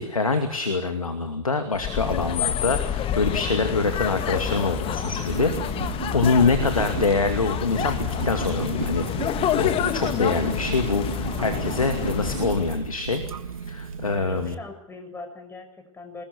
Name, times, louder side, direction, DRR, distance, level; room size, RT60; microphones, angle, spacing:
voice 1, 0.0-13.3 13.6-14.6, left 4 dB, 85° left, 7 dB, 2.4 m, -25 dB
sound 1, 1.7-12.9, left 10 dB, 30° left, 1.7 m, -28 dB
sound 2, 4.4-14.5, right 6 dB, 80° right, 1.5 m, -33 dB
voice 2, 14.0-16.2, left 3 dB, 15° left, 6 dB, 6.6 m, -41 dB
25.0 x 21.0 x 8.3 m, 0.77 s
figure-of-eight pair, 95°, 17 cm